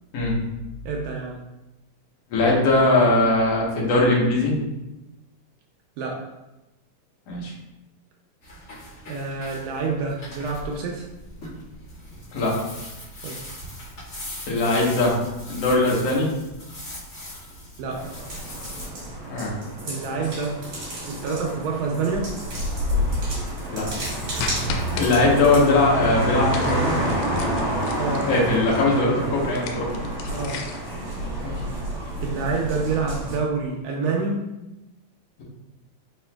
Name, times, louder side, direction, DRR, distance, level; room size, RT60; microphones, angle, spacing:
voice 1, 0.9-1.4 6.0-6.3 9.1-11.1 13.2-13.5 17.8-18.1 19.9-20.6 21.0-22.3 28.0-28.3 30.3-30.6 32.2-34.5, right 4 dB, 80° right, 0 dB, 1.8 m, -27 dB
voice 2, 2.3-4.5 7.3-7.5 12.3-12.6 14.5-15.2 15.5-16.3 19.3-19.5 23.7-23.9 24.9-27.0 28.3-29.9 31.4-31.5, left 2 dB, 65° left, -4 dB, 1.7 m, -20 dB
sound 1, 8.4-18.9, left 1 dB, 35° left, 1.5 m, -40 dB
sound 2, 17.9-33.4, equal, 45° right, 2.1 m, -28 dB
sound 3, 24.4-25.1 26.5-28.4 29.5-30.9, left 5 dB, 85° left, 2.2 m, -34 dB
5.0 x 4.3 x 2.2 m, 0.98 s
omnidirectional pair, 3.9 m